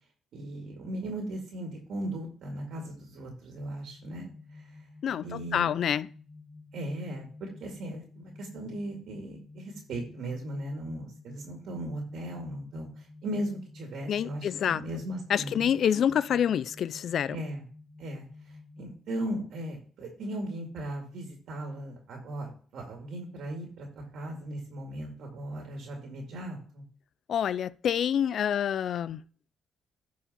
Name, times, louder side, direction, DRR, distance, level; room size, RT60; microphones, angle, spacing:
voice 1, 0.3-4.3 4.5-4.6 5.2-5.7 6.7-15.7 17.3-17.6 18.0-18.3 18.8-26.8, right 1 dB, 70° right, 2.1 m, -37 dB
sound 1, 3.9-18.9, left 3 dB, 30° right, 2.9 m, -51 dB
voice 2, 5.0-6.1 14.1-14.8 15.3-17.4 27.3-29.2, left 9 dB, 65° left, 0.4 m, -27 dB
11.0 x 4.8 x 4.2 m
cardioid pair, 90°, 0 cm